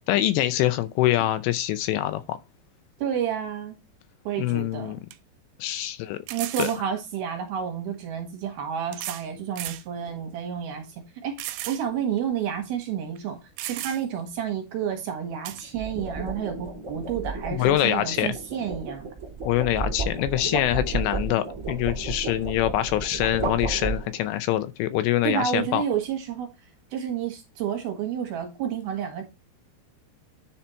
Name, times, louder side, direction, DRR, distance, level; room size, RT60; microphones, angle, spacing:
voice 1, 0.1-2.4 4.4-5.0 5.6-6.2 6.6-6.7 17.5-18.3 19.4-25.8, left 14 dB, 80° left, 2.7 m, -24 dB
voice 2, 3.0-3.8 4.2-5.0 6.3-19.1 25.2-26.5 26.9-29.2, right 8 dB, 65° right, 3.1 m, -30 dB
sound 1, 4.5-4.6 5.1-5.2 6.3-6.8 7.9-8.0 8.9-9.3 9.6-9.8 10.4-10.5 11.4-11.8 12.2-12.3 13.2-13.3 13.6-14.2 15.4-15.6, right 14 dB, 85° right, 3.0 m, -35 dB
sound 2, 10.0-10.4 15.5-24.4, right 3 dB, 30° right, 1.5 m, -33 dB
10.0 x 4.3 x 4.4 m
omnidirectional pair, 5.3 m